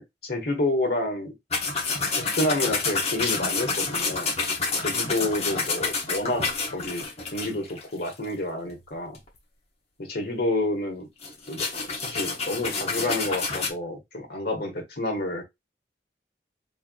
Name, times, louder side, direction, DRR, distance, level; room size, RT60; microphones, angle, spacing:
voice 1, 0.0-1.3 2.1-4.3 4.8-7.0 7.3-9.2 10.0-11.1 11.5-11.6 12.0-15.4, left 1 dB, 60° left, 1.5 m, -29 dB
sound 1, 1.5-8.3 8.7-8.8 9.1-9.3 11.2-13.7, left 4 dB, 35° left, 1.1 m, -28 dB
4.1 x 3.5 x 2.3 m
head